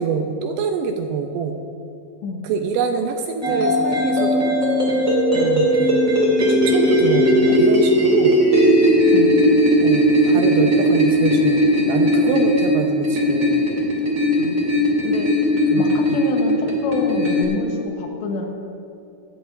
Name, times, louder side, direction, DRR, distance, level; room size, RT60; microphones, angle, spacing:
voice 1, 0.0-1.6 2.4-4.5 5.3-6.0 6.5-8.4 9.8-13.6 15.7-16.2, right 5 dB, 80° right, 4 dB, 2.5 m, -25 dB
sound 1, 3.4-17.4, equal, 25° right, 2.0 m, -17 dB
voice 2, 14.4-14.7 15.0-15.3 15.8-18.5, left 3 dB, 75° left, 1 dB, 3.4 m, -27 dB
19.0 x 12.5 x 2.7 m, 2.7 s
omnidirectional pair, 5.2 m